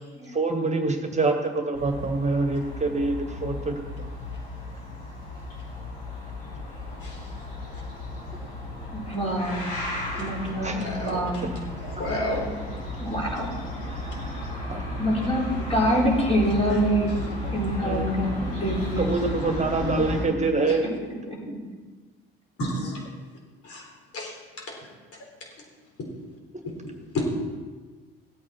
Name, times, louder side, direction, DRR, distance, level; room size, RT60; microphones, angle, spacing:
voice 1, 0.3-4.1 10.1-10.3 10.6-11.2 11.8-12.1 14.7-14.8 17.4-17.5 17.9-18.1 19.0-20.8, right 3 dB, 25° right, 5 dB, 1.8 m, -26 dB
sound 1, 1.7-20.2, left 1 dB, 70° left, 3.6 m, -34 dB
voice 2, 8.9-9.7 10.2-11.5 13.0-13.5 15.0-17.1 17.5-19.1 19.4-19.9 21.3-21.4, equal, 20° left, -4 dB, 4.3 m, -26 dB
voice 3, 10.8-11.3 12.0-12.5 20.7-20.8 22.6-23.1 23.6-23.8 24.1-24.3 24.7-24.8 26.0-26.1 26.7-26.8 27.1-27.3, left 1 dB, 50° left, -1 dB, 3.7 m, -30 dB
16.5 x 8.4 x 4.5 m, 1.4 s
figure-of-eight pair, 50°, 29 cm